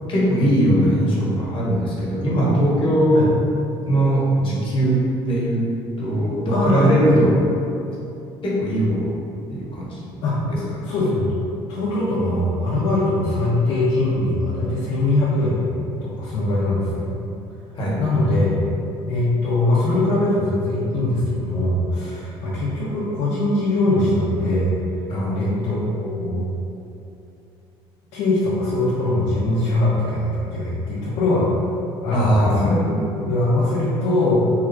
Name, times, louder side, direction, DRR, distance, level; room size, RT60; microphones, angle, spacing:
voice 1, 0.0-3.3 3.8-5.7 6.0-7.4 8.4-9.2 9.5-10.9 17.7-18.0 25.1-25.3 32.1-32.8, right 1 dB, 45° left, -5 dB, 1.4 m, -20 dB
voice 2, 6.5-7.2 10.2-10.4 10.8-11.3 11.7-17.1 18.0-18.5 19.1-24.7 25.3-26.5 28.1-31.5 32.0-34.5, left 2 dB, 75° left, -9 dB, 0.9 m, -21 dB
3.8 x 2.5 x 4.6 m, 2.8 s
hypercardioid pair, 75°, 12 cm